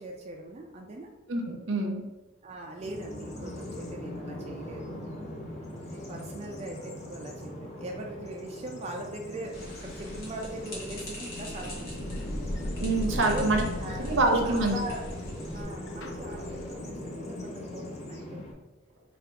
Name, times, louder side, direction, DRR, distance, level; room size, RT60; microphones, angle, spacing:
voice 1, 0.0-1.1 2.4-5.0 5.9-12.1 13.2-15.1 15.4-18.4, right 1 dB, 35° right, 0 dB, 0.3 m, -40 dB
voice 2, 1.3-2.0 12.8-13.6 14.0-14.8, right 2 dB, 75° right, 3 dB, 0.7 m, -26 dB
Bird vocalization bird call bird song, 2.8-18.5, left 1 dB, 35° left, 0.6 m, -40 dB
sound 1, 9.5-15.6, equal, 55° left, 1.4 m, -43 dB
sound 2, 11.6-17.1, left 1 dB, 75° left, 0.5 m, -38 dB
3.5 x 2.4 x 4.5 m, 1.1 s
head